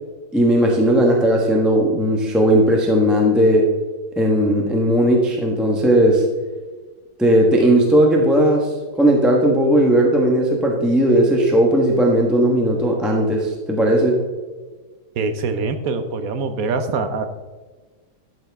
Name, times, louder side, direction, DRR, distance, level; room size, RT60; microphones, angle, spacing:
voice 1, 0.3-3.6 4.2-6.2 7.2-14.1, right 1 dB, ahead, -1 dB, 0.9 m, -16 dB
voice 2, 15.2-17.3, right 4 dB, 60° right, 9 dB, 1.0 m, -24 dB
12.0 x 6.9 x 3.5 m, 1.3 s
omnidirectional pair, 2.1 m